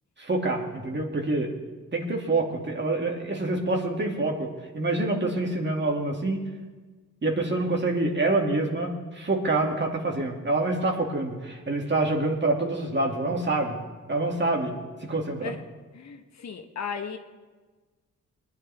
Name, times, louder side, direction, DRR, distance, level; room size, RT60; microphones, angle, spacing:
voice 1, 0.2-1.5 1.9-6.4 7.2-13.8 14.1-14.7 15.0-15.5, right 2 dB, 35° right, 1 dB, 2.4 m, -26 dB
voice 2, 15.9-17.2, left 6 dB, 60° left, 5 dB, 1.2 m, -35 dB
21.0 x 10.0 x 3.5 m, 1.3 s
cardioid pair, 70°, 31 cm